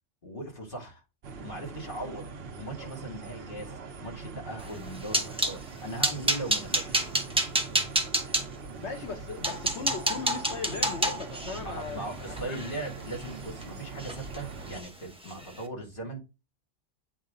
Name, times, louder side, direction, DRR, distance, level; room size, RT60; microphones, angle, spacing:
voice 1, 0.2-1.0 1.4-3.7 4.0-7.1 11.6-16.2, right 1 dB, 45° left, 2.6 m, -39 dB
sound 1, 1.2-14.8, right 4 dB, 60° right, 1.0 m, -42 dB
sound 2, 4.7-5.6 6.0-8.4 9.0-9.1 9.4-13.6 14.0-14.4 14.7-14.9 15.3-15.4, right 1 dB, 5° right, 0.7 m, -29 dB
voice 2, 8.8-12.6, left 5 dB, 70° left, 1.2 m, -38 dB
8.5 x 3.2 x 3.8 m
omnidirectional pair, 1.2 m